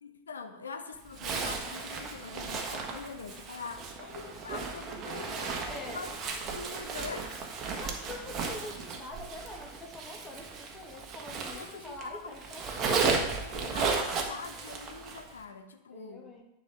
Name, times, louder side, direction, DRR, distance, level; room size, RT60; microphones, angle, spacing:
voice 1, 0.0-6.1 6.5-7.3 11.3-12.4 12.7-16.3, left 5 dB, 70° left, 7 dB, 0.8 m, -44 dB
Zipper (clothing), 1.1-12.0 12.3-15.3, right 4 dB, 30° right, 1.4 m, -35 dB
voice 2, 5.7-6.0 7.7-13.0 15.9-16.4, left 2 dB, 15° left, 0 dB, 2.1 m, -45 dB
10.5 x 5.5 x 4.4 m, 0.89 s
figure-of-eight pair, 90°, 0 cm